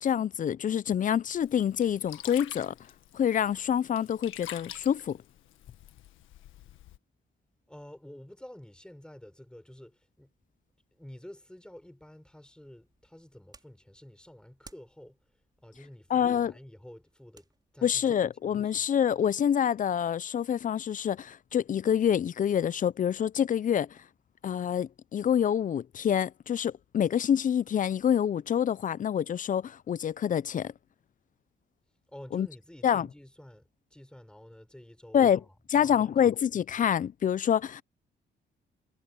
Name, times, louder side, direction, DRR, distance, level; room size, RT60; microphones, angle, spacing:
voice 1, 0.0-2.7 3.1-5.2 16.1-16.5 17.8-24.0 24.4-30.7 32.3-32.5 32.8-33.1 35.1-35.4 35.7-37.8, left 9 dB, 40° left, 0.5 m, -27 dB
Sink (filling or washing), 1.3-7.0, left 13 dB, 85° left, 1.6 m, -47 dB
voice 2, 7.7-10.3 10.9-15.2 15.6-17.5 17.7-18.8 32.1-36.1, left 1 dB, 5° left, 6.7 m, -50 dB
sound 1, 12.6-19.4, right 3 dB, 20° right, 4.8 m, -62 dB
cardioid pair, 90°, 20 cm